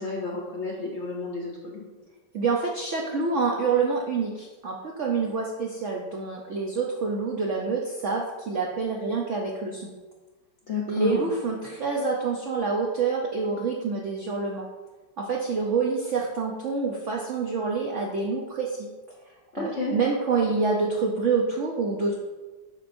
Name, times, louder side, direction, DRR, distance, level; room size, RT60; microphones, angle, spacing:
voice 1, 0.0-1.8 10.7-11.3 19.5-19.9, left 4 dB, 55° left, -1 dB, 0.8 m, -31 dB
voice 2, 2.3-9.9 10.9-14.7 15.2-18.9 19.5-22.1, right 4 dB, 75° right, -1 dB, 0.6 m, -27 dB
7.8 x 5.7 x 2.6 m, 1.2 s
omnidirectional pair, 2.1 m